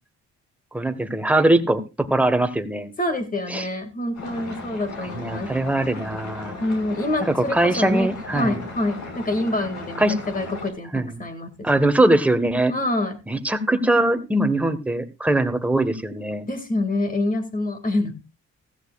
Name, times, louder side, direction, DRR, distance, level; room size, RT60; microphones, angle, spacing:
voice 1, 0.7-1.8 2.1-2.9 3.5-3.7 5.0-6.5 7.5-8.6 10.0-10.1 10.9-11.2 11.6-12.7 13.3-16.5, right 1 dB, 5° right, 8 dB, 1.4 m, -21 dB
voice 2, 3.0-5.5 6.6-8.1 8.3-12.0 12.7-13.2 16.5-18.1, left 1 dB, 25° left, 6 dB, 2.2 m, -26 dB
sound 1, 4.1-10.7, left 2 dB, 65° left, 5.7 m, -37 dB
15.5 x 14.0 x 2.4 m, 0.26 s
cardioid pair, 90°, 30 cm